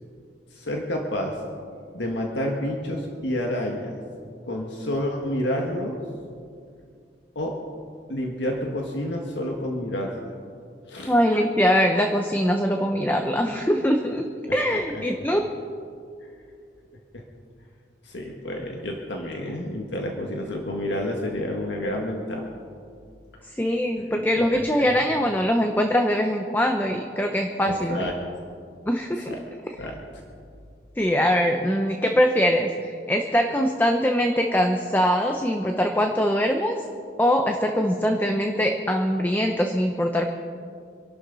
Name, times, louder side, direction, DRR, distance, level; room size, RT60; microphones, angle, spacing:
voice 1, 0.5-1.4 1.9-4.0 4.5-6.0 7.4-7.6 8.1-10.1 10.9-11.1 14.5-15.0 17.1-17.2 18.0-22.5 24.1-24.6 27.6-28.1 29.3-29.4 29.8-30.2, left 1 dB, 85° left, 0 dB, 1.7 m, -29 dB
voice 2, 11.1-14.2 14.5-15.4 23.6-28.1 28.9-29.3 31.0-36.8 37.2-40.3, equal, 10° left, 3 dB, 0.8 m, -22 dB
26.5 x 12.0 x 4.1 m, 2.3 s
head